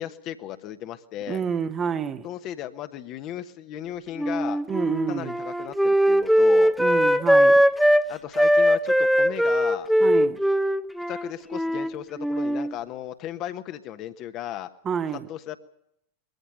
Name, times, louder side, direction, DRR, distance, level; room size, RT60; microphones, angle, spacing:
voice 1, 0.0-1.4 2.2-4.6 5.1-6.7 8.1-9.9 11.1-14.7 15.3-15.6, left 11 dB, 35° left, 1.2 m, -36 dB
voice 2, 1.3-2.3 4.7-5.3 6.8-7.6 10.0-10.4 14.8-15.3, right 7 dB, 25° right, 1.2 m, -28 dB
Wind instrument woodwind instrument, 4.2-8.0 8.3-11.9 12.2-12.7, equal, ahead, 0.9 m, -20 dB
21.5 x 14.5 x 9.3 m
figure-of-eight pair, 90°, 0 cm